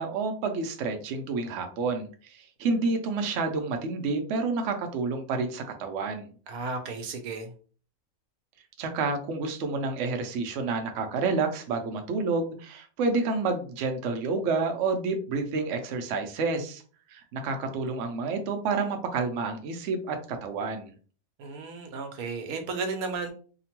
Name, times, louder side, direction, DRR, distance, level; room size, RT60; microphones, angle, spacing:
voice 1, 0.0-6.3 8.8-16.8 17.1-20.9, right 4 dB, 65° right, 5 dB, 0.8 m, -29 dB
voice 2, 6.5-7.5 21.4-23.3, right 4 dB, 85° right, 5 dB, 1.1 m, -34 dB
2.8 x 2.1 x 2.9 m, 0.40 s
omnidirectional pair, 1.5 m